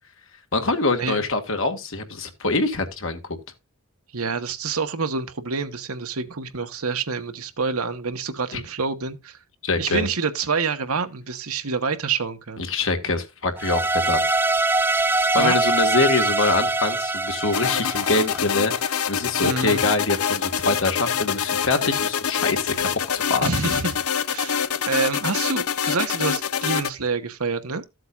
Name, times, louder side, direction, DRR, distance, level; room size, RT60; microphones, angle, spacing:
voice 1, 0.5-3.4 8.5-8.6 9.6-10.1 12.6-14.2 15.3-23.8, left 3 dB, 60° left, 1.8 m, -24 dB
voice 2, 4.1-9.4 9.8-12.7 15.4-15.6 19.4-19.8 23.4-23.9 24.3-24.6 24.9-27.8, right 4 dB, 80° right, 1.2 m, -27 dB
sound 1, 13.6-18.8, right 2 dB, 10° right, 0.5 m, -23 dB
sound 2, 17.5-26.9, left 8 dB, 85° left, 0.7 m, -25 dB
14.5 x 7.8 x 2.4 m
head